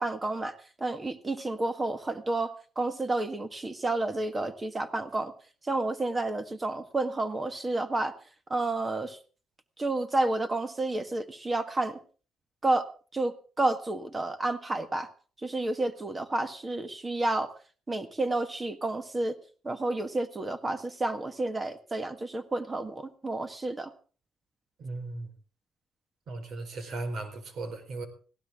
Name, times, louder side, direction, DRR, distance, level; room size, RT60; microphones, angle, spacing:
voice 1, 0.0-5.3 5.6-8.1 8.5-9.2 9.8-12.0 12.6-12.9 13.1-15.1 15.4-17.5 17.9-19.4 19.6-23.9, right 2 dB, 25° right, 9 dB, 1.6 m, -30 dB
voice 2, 24.8-25.3 26.3-28.1, right 2 dB, 65° right, 7 dB, 4.5 m, -37 dB
18.5 x 17.0 x 3.7 m, 0.39 s
cardioid pair, 90°, 0 cm